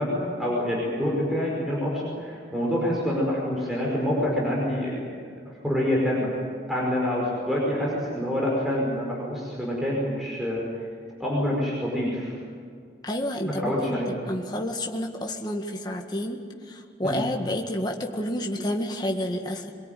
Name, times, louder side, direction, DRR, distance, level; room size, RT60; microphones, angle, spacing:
voice 1, 0.0-6.3 6.7-10.9 11.2-12.4 13.4-14.1 17.0-17.2, left 1 dB, ahead, -5 dB, 5.2 m, -27 dB
voice 2, 13.0-19.7, left 1 dB, 25° left, 1 dB, 1.8 m, -30 dB
23.5 x 22.5 x 9.3 m, 2.1 s
head